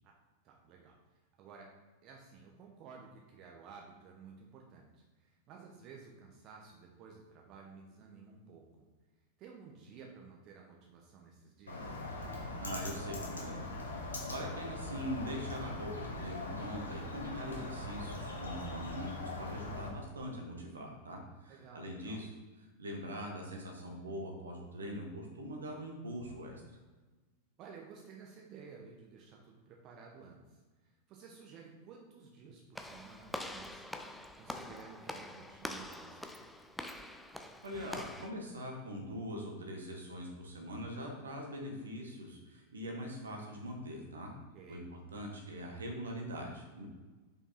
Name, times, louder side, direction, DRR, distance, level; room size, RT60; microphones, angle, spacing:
voice 1, 0.4-1.0 1.4-1.7 2.0-8.9 9.4-12.0 21.5-22.2 27.6-30.6 30.8-36.6 44.5-44.9, right 5 dB, 40° right, 0 dB, 0.9 m, -54 dB
Bird, 11.7-19.9, left 2 dB, 75° left, 1.3 m, -41 dB
voice 2, 12.6-14.0 14.3-22.3 22.8-26.6 37.6-44.3 44.7-46.9, equal, 70° right, 1 dB, 1.4 m, -42 dB
Walk footsteps / Slam, 32.7-38.3, left 1 dB, 5° left, 0.5 m, -45 dB
5.2 x 5.1 x 4.3 m, 1.3 s
figure-of-eight pair, 90°, 0 cm